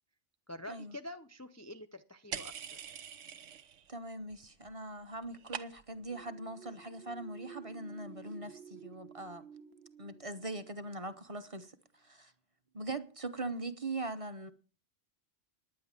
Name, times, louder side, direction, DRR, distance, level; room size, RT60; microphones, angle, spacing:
voice 1, 0.5-2.9, left 1 dB, 20° left, 0.5 m, -47 dB
sound 1, 2.3-3.9 4.2-4.7 5.0-6.1, right 8 dB, 85° right, 1.2 m, -44 dB
voice 2, 3.9-9.4 10.0-11.7 12.0-12.3 12.7-14.5, right 2 dB, 30° right, 1.0 m, -41 dB
sound 2, 6.0-11.6, right 7 dB, 60° right, 1.3 m, -53 dB
10.5 x 9.8 x 7.4 m
omnidirectional pair, 1.2 m